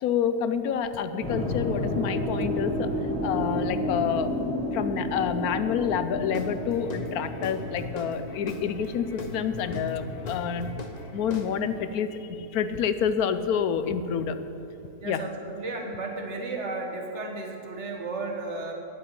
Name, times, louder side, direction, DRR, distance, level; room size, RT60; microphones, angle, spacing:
voice 1, 0.0-4.3 4.7-10.7 11.1-14.4 15.0-15.2, left 7 dB, 80° left, 11 dB, 1.1 m, -28 dB
sound 1, 1.2-11.4, left 1 dB, 5° left, 2.1 m, -32 dB
Guitar / Drum, 6.3-11.9, left 2 dB, 35° left, 0.8 m, -39 dB
voice 2, 15.0-18.7, right 3 dB, 50° right, 2 dB, 1.7 m, -34 dB
9.6 x 8.6 x 9.0 m, 2.9 s
omnidirectional pair, 1.6 m